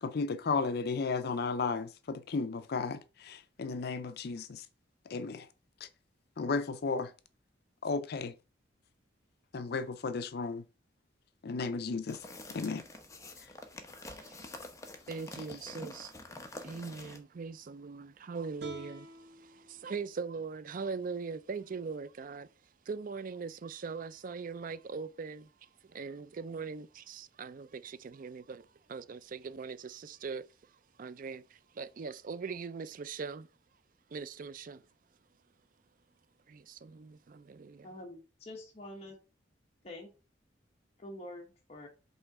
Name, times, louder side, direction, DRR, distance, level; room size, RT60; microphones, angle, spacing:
voice 1, 0.0-4.7 5.1-5.5 6.4-7.1 7.8-8.3 9.5-10.6 11.4-12.2 12.5-12.8, left 4 dB, 60° left, 0.5 m, -34 dB
sound 1, 12.1-17.2, left 2 dB, 15° left, 0.9 m, -47 dB
voice 2, 14.1-14.6 15.1-16.1 16.6-22.5 22.9-30.7 31.0-33.5 34.1-34.8 36.5-37.9, right 5 dB, 50° right, 0.4 m, -41 dB
sound 2, 18.6-21.8, right 1 dB, 65° right, 2.1 m, -53 dB
voice 3, 37.8-39.2 39.8-40.1 41.0-41.9, left 1 dB, 35° left, 1.3 m, -46 dB
5.5 x 3.9 x 5.9 m
head